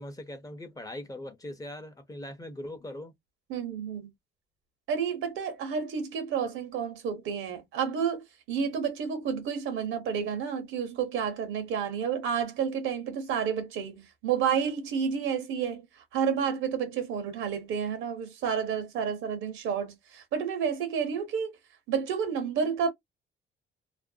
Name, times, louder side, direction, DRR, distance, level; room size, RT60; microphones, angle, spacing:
voice 1, 0.0-3.1, left 1 dB, 20° left, 0.6 m, -40 dB
voice 2, 3.5-4.1 4.9-15.8 16.1-21.6 21.9-22.9, right 7 dB, 90° right, 0.9 m, -30 dB
2.5 x 2.1 x 2.6 m
cardioid pair, 90°, 20 cm